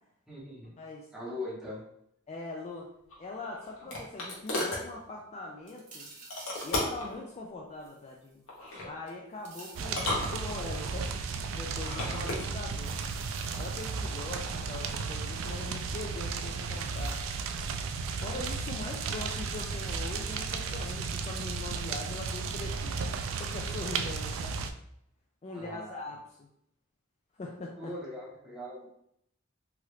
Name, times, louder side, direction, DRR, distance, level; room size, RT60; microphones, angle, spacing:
voice 1, 0.3-0.7 1.1-1.8 25.5-26.0 27.8-28.9, left 1 dB, 5° right, -6 dB, 1.0 m, -40 dB
voice 2, 0.8-1.1 2.3-2.9 3.2-6.1 6.6-8.4 8.8-11.1 11.5-12.9 13.6-17.2 18.1-23.0 23.3-24.6 25.4-26.5 27.4-27.9, left 2 dB, 35° left, -1 dB, 0.4 m, -41 dB
sound 1, 3.1-4.9 6.3-7.1 8.5-8.9 9.8-10.9 11.7-12.5, left 1 dB, 85° left, 1.0 m, -34 dB
sound 2, 5.7-7.0 7.8-8.7 9.1-10.0 10.6-11.1 12.7-14.3 16.0-16.1 17.0-17.3, right 3 dB, 40° right, 0.7 m, -51 dB
sound 3, 9.8-24.7, right 5 dB, 70° right, 0.3 m, -34 dB
3.0 x 2.4 x 3.1 m, 0.72 s
head